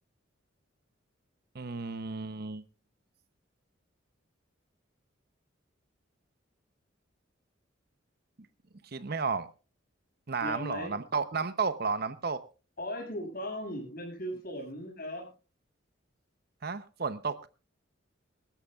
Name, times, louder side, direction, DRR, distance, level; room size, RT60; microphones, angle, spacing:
voice 1, 1.5-2.6 8.9-9.5 10.3-12.4 16.6-17.5, right 4 dB, 50° right, 0.8 m, -32 dB
voice 2, 10.4-10.9 12.8-15.3, equal, 50° left, 6.6 m, -37 dB
23.0 x 13.5 x 2.4 m
head